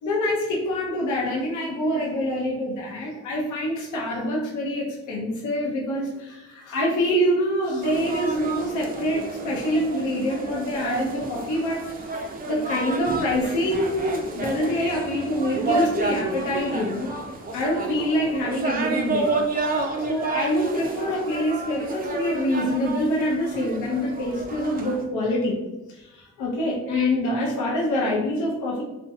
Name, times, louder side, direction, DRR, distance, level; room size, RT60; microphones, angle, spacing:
voice 1, 0.0-12.2 12.4-17.1 17.5-19.3 20.0-25.5 25.9-28.8, left 1 dB, 75° left, -3 dB, 0.6 m, -25 dB
sound 1, 7.8-25.0, right 3 dB, 30° right, 0.4 m, -30 dB
2.6 x 2.1 x 2.6 m, 1.0 s
cardioid pair, 90°, 30 cm